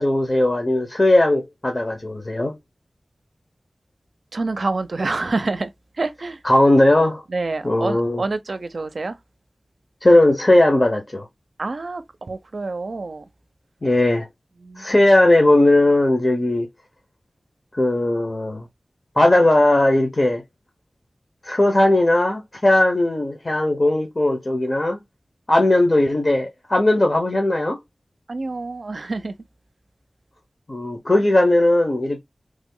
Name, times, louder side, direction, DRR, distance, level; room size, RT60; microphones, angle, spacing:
voice 1, 0.0-2.5 6.4-7.2 7.6-8.2 10.0-11.3 13.8-14.3 14.8-16.7 17.8-18.6 19.2-20.4 21.4-25.0 25.5-27.8 30.7-32.2, left 1 dB, 40° left, 0.8 m, -17 dB
voice 2, 4.3-5.7 6.0-6.4 7.3-9.2 11.6-13.2 14.6-14.8 28.3-29.3, right 3 dB, 70° right, 0.5 m, -27 dB
3.2 x 2.0 x 3.7 m
wide cardioid pair, 50°, 0 cm